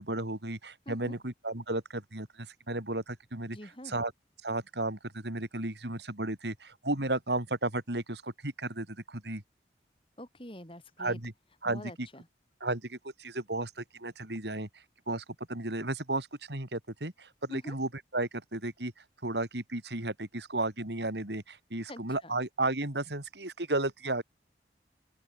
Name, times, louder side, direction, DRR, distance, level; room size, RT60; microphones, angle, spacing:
voice 1, 0.0-3.6 3.9-4.1 4.4-9.4 11.0-11.3 11.6-12.1 12.6-24.2, right 2 dB, 80° right, 4.0 m, -34 dB
voice 2, 0.9-1.2 3.5-4.0 10.2-11.2 11.6-12.3 17.5-17.8 21.8-22.3, left 1 dB, 30° left, 5.5 m, -46 dB
open air
head